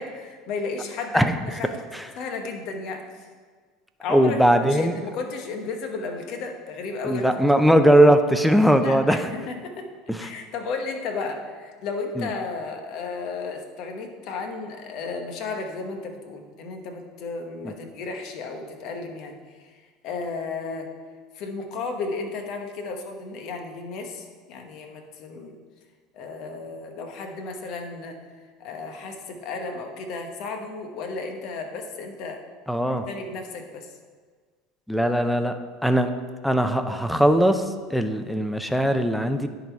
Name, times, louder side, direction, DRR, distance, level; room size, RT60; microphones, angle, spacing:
voice 1, 0.0-1.8 2.2-3.2 4.0-7.3 8.8-9.9 10.2-19.3 19.6-20.9 21.3-25.5 26.1-28.2 28.6-32.4 32.8-33.9, left 4 dB, 60° left, 4 dB, 1.1 m, -33 dB
voice 2, 4.1-4.9 7.0-9.2 12.2-12.3 32.7-33.0 34.9-35.5 35.8-36.1 36.4-37.6 37.9-39.5, right 1 dB, ahead, 8 dB, 0.5 m, -19 dB
10.0 x 4.0 x 4.6 m, 1.5 s
supercardioid pair, 105°, 0 cm